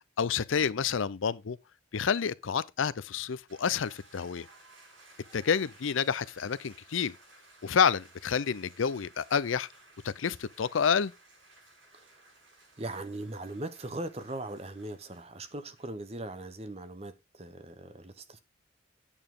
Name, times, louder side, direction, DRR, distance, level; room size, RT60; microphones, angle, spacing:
voice 1, 0.2-1.6 1.9-4.5 5.3-7.1 7.6-9.7 10.0-11.1, left 6 dB, 85° left, 0.5 m, -29 dB
sound 1, 3.5-16.2, right 2 dB, 75° right, 7.0 m, -58 dB
voice 2, 12.8-18.4, right 2 dB, 30° right, 0.9 m, -39 dB
8.8 x 7.0 x 3.8 m
head